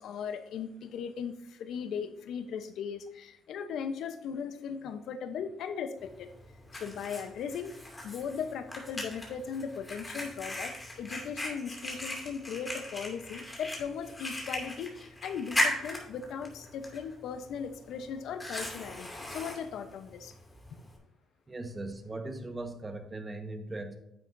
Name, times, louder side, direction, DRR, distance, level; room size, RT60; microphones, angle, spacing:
voice 1, 0.0-6.3 6.7-7.7 8.0-20.3 20.7-20.8, left 6 dB, 75° left, 10 dB, 0.8 m, -38 dB
Fire, 6.0-21.0, left 1 dB, 20° left, 2.5 m, -38 dB
voice 2, 21.5-24.0, right 2 dB, 25° right, 6 dB, 1.3 m, -39 dB
9.8 x 7.6 x 2.7 m, 0.83 s
cardioid pair, 90°, 0 cm